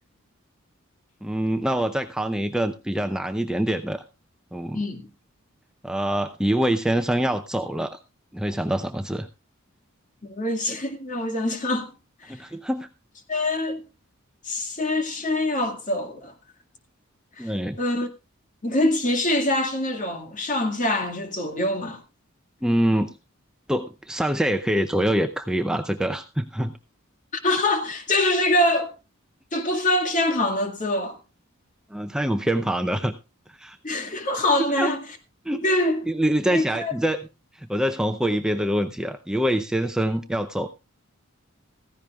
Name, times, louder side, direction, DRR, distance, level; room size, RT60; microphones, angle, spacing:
voice 1, 1.2-4.0 4.5-4.8 5.8-8.0 8.3-9.3 12.3-12.9 17.4-17.8 22.6-23.1 23.7-26.7 31.9-33.1 33.5-33.8 34.6-34.9 35.4-35.6 36.1-37.3 37.5-40.7, right 1 dB, 5° right, 0.5 m, -25 dB
voice 2, 4.7-5.1 10.2-11.9 12.2-12.4 13.3-13.8 14.4-16.3 17.4-18.1 18.6-22.0 27.4-28.9 29.5-31.2 33.8-35.0 35.5-36.1 36.5-36.9, left 1 dB, 40° left, 2.0 m, -24 dB
15.5 x 15.0 x 2.4 m
head